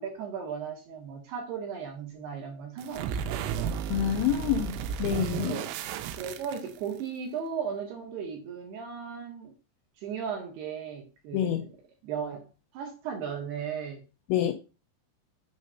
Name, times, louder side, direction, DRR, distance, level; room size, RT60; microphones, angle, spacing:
voice 1, 0.0-3.9 5.4-5.7 6.2-9.5 10.0-11.7 12.0-12.5 12.7-14.0 14.4-14.5, right 7 dB, 65° right, 1 dB, 2.9 m, -36 dB
sound 1, 2.8-7.0, right 8 dB, 85° right, 3.2 m, -33 dB
voice 2, 3.9-4.7 5.0-5.6 11.3-11.6 14.3-14.5, left 10 dB, 85° left, 6 dB, 2.6 m, -27 dB
7.5 x 3.7 x 5.6 m, 0.31 s
omnidirectional pair, 5.8 m